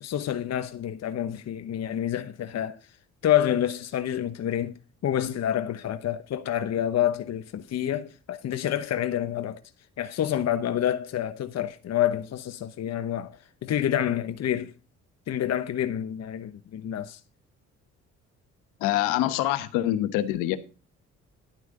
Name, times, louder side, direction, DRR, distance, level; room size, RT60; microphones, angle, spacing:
voice 1, 0.0-2.8 3.2-4.7 5.0-9.6 10.0-14.7 15.3-17.2, left 11 dB, 55° left, 1.0 m, -28 dB
voice 2, 18.8-20.6, left 13 dB, 85° left, 1.2 m, -25 dB
12.0 x 9.2 x 3.8 m
supercardioid pair, 60°, 31 cm